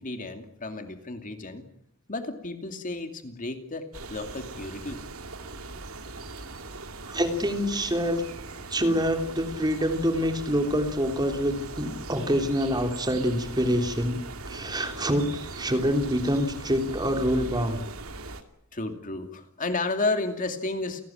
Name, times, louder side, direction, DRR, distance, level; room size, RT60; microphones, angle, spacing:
voice 1, 0.0-1.7 2.1-5.0 18.7-21.0, left 2 dB, 35° left, 6 dB, 2.6 m, -32 dB
sound 1, 3.9-18.4, right 3 dB, 70° right, 2.5 m, -40 dB
voice 2, 7.1-8.2 8.7-14.2 14.5-17.8, equal, 20° right, 5 dB, 3.3 m, -26 dB
29.5 x 18.0 x 8.9 m, 0.73 s
head